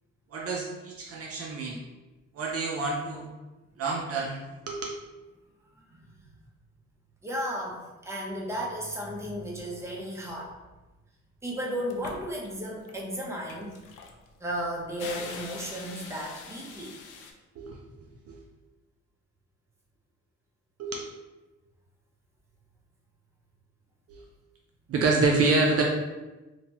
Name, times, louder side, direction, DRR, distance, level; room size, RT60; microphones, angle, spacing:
voice 1, 0.3-1.8 2.3-3.3 3.8-5.0 17.6-17.8 18.3-18.4 20.8-21.1 24.1-24.2 24.9-25.8, right 3 dB, 50° right, 0 dB, 0.4 m, -27 dB
voice 2, 7.2-10.5 11.4-13.8 14.4-17.0, equal, 10° right, -3 dB, 0.6 m, -34 dB
sound 1, 11.9-12.5 12.8-17.3, left 5 dB, 85° left, 0.5 m, -43 dB
2.8 x 2.2 x 2.8 m, 1.1 s
cardioid pair, 90°, 30 cm